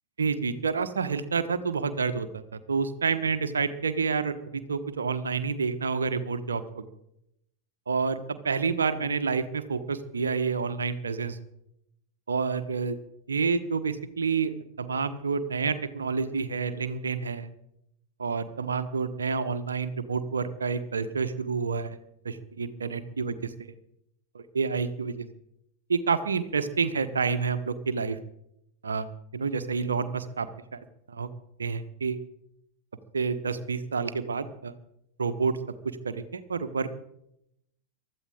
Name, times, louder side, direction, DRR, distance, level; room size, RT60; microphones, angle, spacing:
voice 1, 0.2-2.4 2.7-6.9 7.9-8.2 8.4-11.4 12.3-13.0 13.3-17.5 18.2-22.0 22.2-23.7 24.3-25.3 25.9-28.2 28.8-29.1 29.3-30.5 30.7-30.8 31.1-31.3 31.6-32.2 33.1-34.7 35.2-35.6 35.8-37.0, right 5 dB, 70° right, 11 dB, 1.2 m, -29 dB
23.5 x 13.5 x 3.7 m, 0.80 s
figure-of-eight pair, 90°, 0 cm